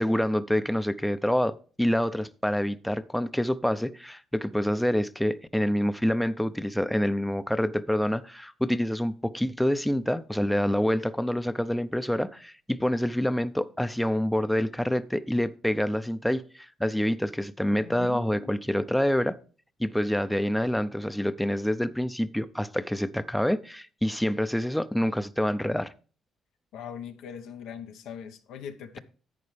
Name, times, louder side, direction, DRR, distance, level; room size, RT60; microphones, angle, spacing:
voice 1, 0.0-19.4 19.8-25.9, equal, 5° left, 0.5 m, -27 dB
voice 2, 17.8-18.6 26.7-29.0, left 8 dB, 90° left, 1.0 m, -41 dB
11.0 x 8.4 x 3.2 m
cardioid pair, 90°, 0 cm